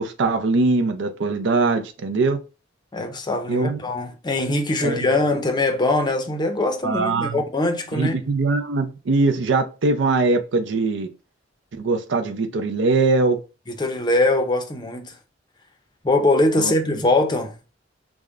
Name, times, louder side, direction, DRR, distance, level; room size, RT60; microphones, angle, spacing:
voice 1, 0.0-2.4 3.5-3.8 4.8-5.1 6.8-7.4 7.9-11.1 11.8-13.4 16.6-16.7, right 3 dB, 70° right, 0.5 m, -21 dB
voice 2, 2.9-8.1 13.7-15.1 16.0-17.5, left 2 dB, 25° left, 0.6 m, -22 dB
3.5 x 2.1 x 3.6 m
head